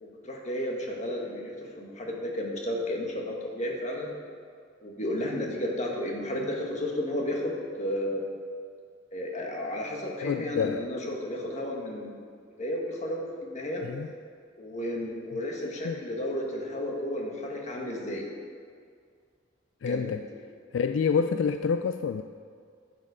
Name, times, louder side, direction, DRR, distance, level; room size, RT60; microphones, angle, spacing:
voice 1, 0.0-4.1 4.8-8.2 9.1-12.2 12.6-13.8 14.6-18.2 19.9-20.1, left 1 dB, 40° left, -1 dB, 1.6 m, -33 dB
voice 2, 10.2-10.9 13.8-14.1 15.8-16.0 19.8-20.2 20.7-22.2, left 6 dB, 75° left, 9 dB, 0.3 m, -27 dB
11.0 x 7.5 x 4.9 m, 2.1 s
head